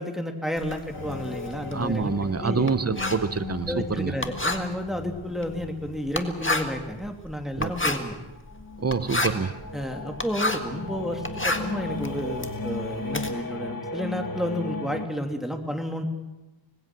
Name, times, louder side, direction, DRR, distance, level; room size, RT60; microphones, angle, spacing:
voice 1, 0.0-2.7 3.7-8.2 9.7-16.0, equal, ahead, 2.8 m, -31 dB
Writing, 0.6-10.8 11.1-13.3, left 2 dB, 25° left, 1.8 m, -31 dB
sound 1, 0.9-7.2 7.9-15.1, left 3 dB, 40° left, 1.6 m, -36 dB
voice 2, 1.7-4.1 7.6-7.7 8.8-9.5, right 4 dB, 30° right, 0.8 m, -26 dB
25.5 x 19.5 x 6.1 m
wide cardioid pair, 55°, 49 cm